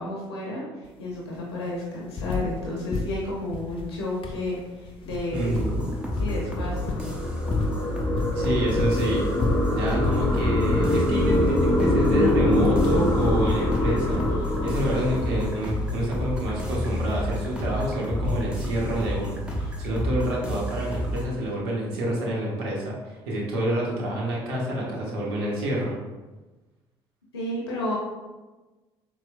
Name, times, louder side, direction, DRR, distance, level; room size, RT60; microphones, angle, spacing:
voice 1, 0.0-5.6 6.1-7.1 27.3-27.9, left 1 dB, 90° left, -3 dB, 0.6 m, -32 dB
sound 1, 0.8-0.9 1.2-2.6 2.9-18.9 19.9-20.0, left 3 dB, 45° left, 0.5 m, -33 dB
sound 2, 5.3-21.2, equal, 5° right, 0.8 m, -31 dB
voice 2, 5.3-5.9 8.3-9.3 9.7-26.0, right 1 dB, 75° right, -3 dB, 0.7 m, -28 dB
sound 3, 5.6-16.2, left 1 dB, 20° left, 0.9 m, -25 dB
4.2 x 2.0 x 2.4 m, 1.2 s
hypercardioid pair, 50°, 13 cm